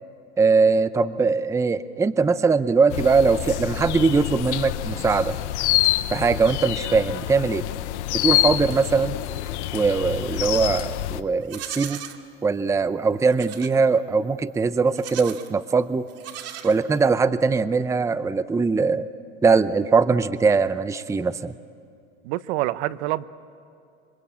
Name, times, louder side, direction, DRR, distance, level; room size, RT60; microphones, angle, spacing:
voice 1, 0.4-5.3 6.1-7.6 8.1-9.1 9.7-12.0 12.4-16.1 16.6-19.0 19.4-21.5, right 4 dB, 10° right, 14 dB, 0.6 m, -21 dB
sound 1, 2.9-11.2, left 15 dB, 80° left, 1.1 m, -26 dB
Livestock farm animals working animals, 10.1-10.9 11.4-12.2 13.3-13.8 14.9-15.5 16.1-17.1, right 11 dB, 45° right, 2.2 m, -38 dB
voice 2, 22.2-23.3, right 16 dB, 65° right, 15 dB, 1.0 m, -26 dB
27.0 x 26.0 x 8.6 m, 2.5 s
supercardioid pair, 120°, 34 cm